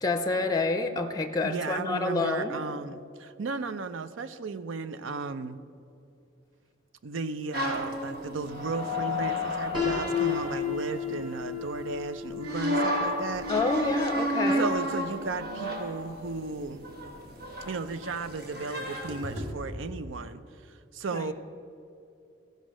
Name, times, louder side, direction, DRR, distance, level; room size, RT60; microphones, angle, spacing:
voice 1, 0.0-2.6 13.5-14.7 21.1-21.3, left 3 dB, 20° left, 7 dB, 0.5 m, -28 dB
voice 2, 1.4-5.6 7.0-13.5 14.5-16.9 17.7-21.3, right 4 dB, 90° right, 13 dB, 0.5 m, -35 dB
sound 1, 7.5-11.5 12.4-19.5, left 1 dB, 55° right, 1.3 m, -32 dB
Piano, 9.7-15.6, left 7 dB, 25° right, 2.7 m, -34 dB
14.5 x 5.3 x 6.2 m, 2.6 s
head